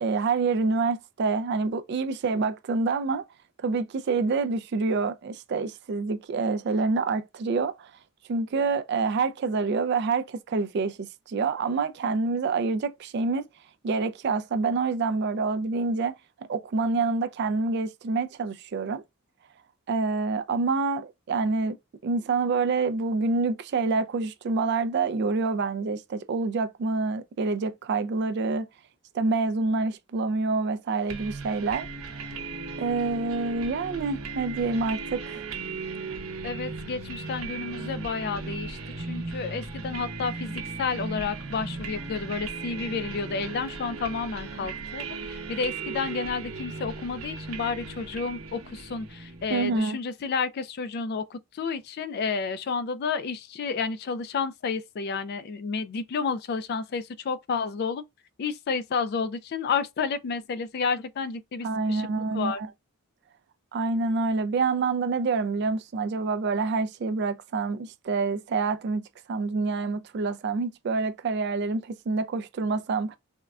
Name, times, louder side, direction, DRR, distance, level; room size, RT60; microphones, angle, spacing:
voice 1, 0.0-3.2 3.6-7.9 8.3-13.4 13.8-16.1 16.5-19.0 19.9-21.8 22.0-28.7 29.1-31.9 32.8-35.5 49.5-50.0 61.6-62.7 63.7-69.0 69.3-73.2, right 4 dB, 50° right, 0.3 m, -27 dB
sound 1, 31.1-49.8, right 4 dB, 75° right, 0.7 m, -37 dB
voice 2, 36.4-58.0 58.4-62.6, left 5 dB, 45° left, 0.3 m, -31 dB
3.5 x 2.1 x 2.3 m
head